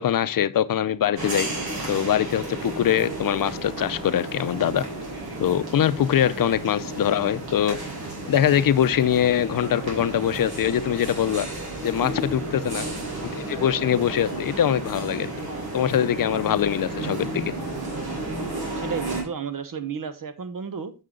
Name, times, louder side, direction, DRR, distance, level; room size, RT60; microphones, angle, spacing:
voice 1, 0.0-1.5 1.9-4.9 5.4-7.8 8.3-11.5 11.8-12.9 13.2-15.3 15.7-17.5, left 10 dB, 65° left, 0.6 m, -23 dB
sound 1, 1.2-19.2, right 2 dB, 80° right, 3.7 m, -33 dB
voice 2, 18.8-20.9, right 6 dB, 60° right, 1.0 m, -32 dB
7.8 x 6.4 x 3.7 m
wide cardioid pair, 95°, 37 cm